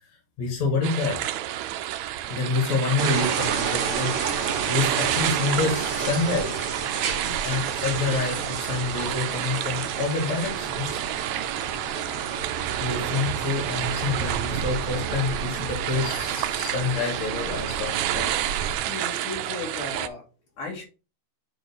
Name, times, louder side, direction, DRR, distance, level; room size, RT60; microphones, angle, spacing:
voice 1, 0.4-1.2 2.3-4.1 4.7-6.7 7.2-11.0 12.3-12.4 12.8-18.3, left 4 dB, 60° left, 0 dB, 3.0 m, -27 dB
sound 1, 0.8-20.1, right 12 dB, 80° right, 1.6 m, -30 dB
sound 2, 3.0-18.8, right 6 dB, 60° right, 1.6 m, -31 dB
voice 2, 18.6-20.2 20.6-20.8, left 3 dB, 75° left, -2 dB, 4.0 m, -36 dB
8.8 x 3.0 x 4.3 m, 0.32 s
omnidirectional pair, 3.7 m